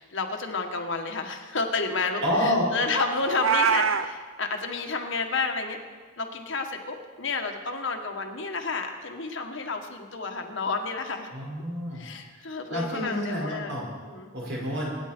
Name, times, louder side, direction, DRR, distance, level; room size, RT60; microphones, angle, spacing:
voice 1, 0.0-5.8 6.2-11.3 11.9-13.7 14.0-14.3, left 4 dB, 65° left, 4 dB, 1.6 m, -31 dB
voice 2, 2.2-2.7 11.3-12.0 12.7-13.9 14.3-14.9, left 1 dB, 60° right, -3 dB, 5.4 m, -28 dB
Meow, 3.2-4.1, right 6 dB, 80° right, 0.8 m, -23 dB
25.0 x 10.0 x 4.5 m, 1.5 s
head